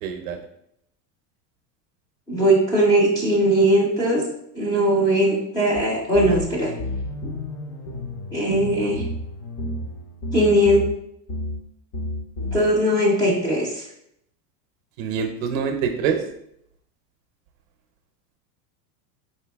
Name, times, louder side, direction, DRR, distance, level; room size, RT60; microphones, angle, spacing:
voice 1, 0.0-0.4 15.0-16.2, right 7 dB, 50° right, 6 dB, 0.6 m, -25 dB
voice 2, 2.3-4.2 4.5-6.7 8.3-9.0 10.3-10.8 12.5-13.8, right 1 dB, 10° left, -4 dB, 0.4 m, -19 dB
sound 1, 5.7-5.8 6.1-11.0 11.3-11.6 11.9-12.6, left 1 dB, 40° left, 0.7 m, -31 dB
4.5 x 2.8 x 3.4 m, 0.75 s
supercardioid pair, 155°, 50 cm